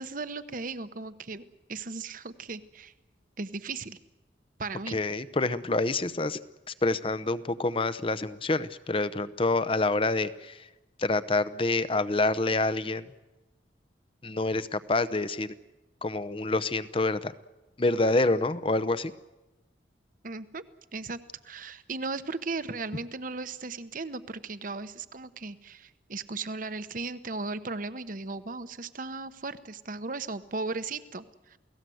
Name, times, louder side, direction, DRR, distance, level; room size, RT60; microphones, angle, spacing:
voice 1, 0.0-1.4 1.7-2.9 3.4-4.0 4.6-5.0 20.2-20.6 20.9-21.2 21.4-31.6, right 3 dB, 45° right, 12 dB, 1.0 m, -36 dB
voice 2, 4.9-6.4 6.7-10.7 11.0-13.1 14.2-15.5 16.0-17.3 17.8-19.1, left 2 dB, 30° left, 14 dB, 0.8 m, -27 dB
29.0 x 18.0 x 7.8 m, 1.1 s
head